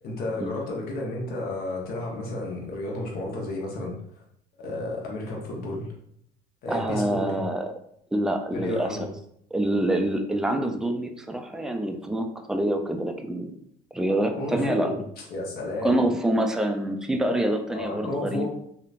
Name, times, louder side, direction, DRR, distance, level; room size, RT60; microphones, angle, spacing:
voice 1, 0.0-4.0 4.6-5.9 6.6-7.4 8.5-9.1 14.3-15.0 15.3-16.1 17.7-18.5, left 2 dB, 60° left, -1 dB, 0.9 m, -32 dB
voice 2, 6.7-7.7 8.1-9.0 9.5-13.5 13.9-14.9 15.8-18.5, right 1 dB, 5° right, 5 dB, 0.3 m, -26 dB
3.0 x 2.1 x 2.4 m, 0.70 s
supercardioid pair, 85°, 17 cm